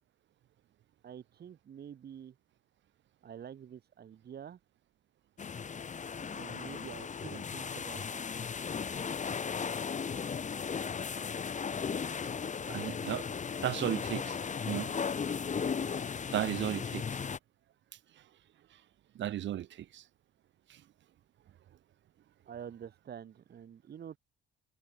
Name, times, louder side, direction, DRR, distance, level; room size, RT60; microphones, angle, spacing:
voice 1, 1.0-2.3 3.2-4.6 6.3-8.3 22.5-24.2, right 8 dB, 55° right, 1.6 m, -47 dB
sound 1, 5.4-17.4, left 6 dB, 40° left, 1.7 m, -36 dB
voice 2, 12.7-13.2 13.6-14.4 14.6-14.9 16.3-17.2 19.1-20.0 20.7-20.8, right 12 dB, 70° right, 1.2 m, -34 dB
cardioid pair, 90°, 20 cm